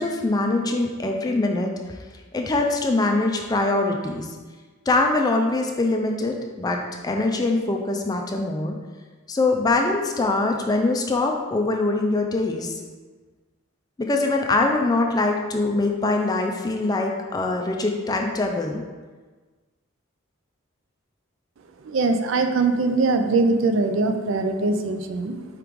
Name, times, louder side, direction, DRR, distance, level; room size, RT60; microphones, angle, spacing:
voice 1, 0.0-2.0 2.3-4.3 4.9-8.8 9.3-12.7 14.0-18.8, left 2 dB, 20° left, 2 dB, 0.3 m, -23 dB
voice 2, 21.8-25.5, right 3 dB, 65° right, 7 dB, 0.4 m, -22 dB
4.8 x 3.1 x 3.5 m, 1.4 s
head